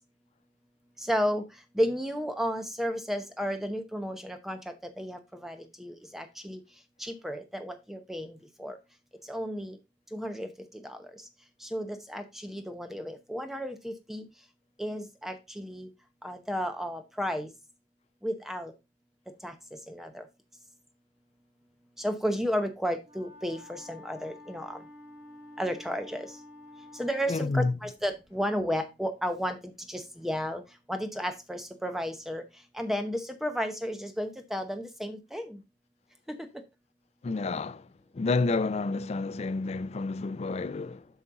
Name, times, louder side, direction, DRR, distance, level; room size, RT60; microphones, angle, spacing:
voice 1, 1.1-1.4 1.7-4.6 5.0-6.6 7.0-8.8 9.3-9.8 10.1-10.5 10.8-11.0 11.6-14.2 14.8-15.9 16.2-17.5 18.2-18.7 19.4-19.5 19.9-20.2 22.0-24.8 25.6-26.3 27.0-29.6 29.9-30.6 30.9-32.4 32.7-35.6 36.3-36.4, equal, ahead, 0.8 m, -33 dB
Wind instrument woodwind instrument, 23.0-27.4, left 2 dB, 35° right, 1.6 m, -50 dB
voice 2, 27.3-27.8 37.2-37.9 38.1-41.1, left 3 dB, 35° left, 0.3 m, -29 dB
8.5 x 5.3 x 3.8 m
head